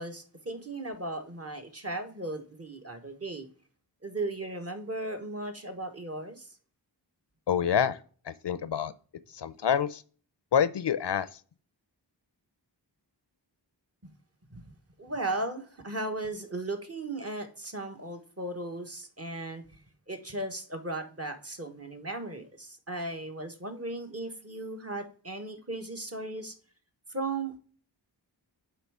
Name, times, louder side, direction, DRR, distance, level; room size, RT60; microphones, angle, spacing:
voice 1, 0.0-3.5 4.0-6.5 14.5-14.6 15.0-19.6 20.1-26.5 27.1-27.6, right 2 dB, 35° right, 1.2 m, -36 dB
voice 2, 7.5-8.0 8.3-8.9 9.3-10.0 10.5-11.3, left 8 dB, 70° left, 0.6 m, -27 dB
8.2 x 3.2 x 4.8 m
wide cardioid pair, 60°, 43 cm